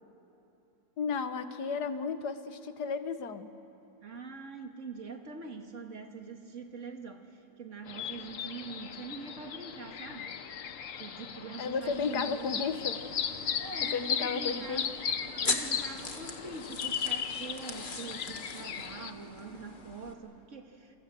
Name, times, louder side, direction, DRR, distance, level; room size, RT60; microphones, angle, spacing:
voice 1, 1.0-3.5 11.6-13.0 13.9-14.8, left 5 dB, 80° left, 10 dB, 1.7 m, -33 dB
voice 2, 4.0-10.4 11.0-12.5 13.6-14.9 15.4-21.0, right 4 dB, 50° right, 5 dB, 1.9 m, -44 dB
sound 1, 7.9-19.1, left 7 dB, 60° left, 1.2 m, -36 dB
sound 2, 11.9-20.1, left 3 dB, 30° left, 1.9 m, -41 dB
28.5 x 24.5 x 7.6 m, 2.8 s
omnidirectional pair, 1.7 m